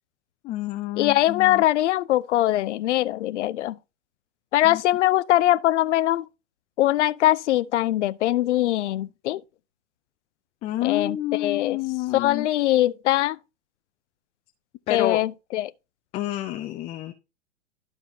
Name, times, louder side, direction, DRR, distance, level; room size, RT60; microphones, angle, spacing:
voice 1, 0.4-1.6 4.6-4.8 10.6-12.5 14.9-15.2 16.1-17.1, left 14 dB, 15° left, 0.4 m, -28 dB
voice 2, 1.0-3.8 4.5-6.3 6.8-9.4 10.8-11.8 12.1-13.4 14.9-15.7, left 14 dB, 65° left, 0.6 m, -22 dB
13.5 x 4.8 x 2.8 m
hypercardioid pair, 110°, 38 cm